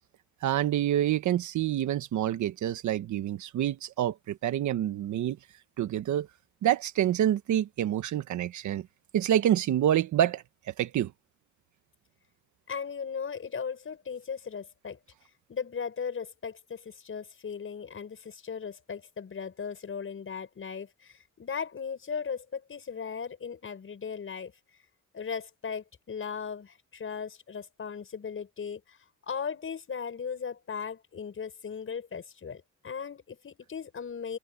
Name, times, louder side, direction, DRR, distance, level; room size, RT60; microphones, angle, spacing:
voice 1, 0.4-5.4 5.8-6.3 6.6-8.9 9.1-11.1, right 11 dB, 75° right, 1.4 m, -27 dB
voice 2, 12.7-15.0 15.5-24.5 25.1-29.0 29.2-34.4, left 6 dB, 45° left, 5.9 m, -37 dB
cardioid pair, 90°, 30 cm